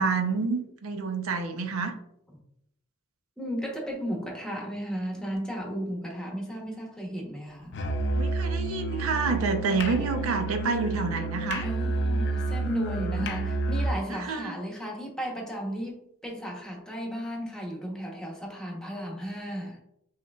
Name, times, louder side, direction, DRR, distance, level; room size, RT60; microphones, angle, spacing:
voice 1, 0.0-1.9 8.1-11.6 14.1-14.5, right 4 dB, 70° right, 7 dB, 0.6 m, -28 dB
voice 2, 3.4-7.7 11.6-19.8, equal, 5° left, -1 dB, 0.9 m, -34 dB
Musical instrument, 7.7-14.0, right 2 dB, 55° left, 0.5 m, -29 dB
5.6 x 3.1 x 2.3 m, 0.76 s
head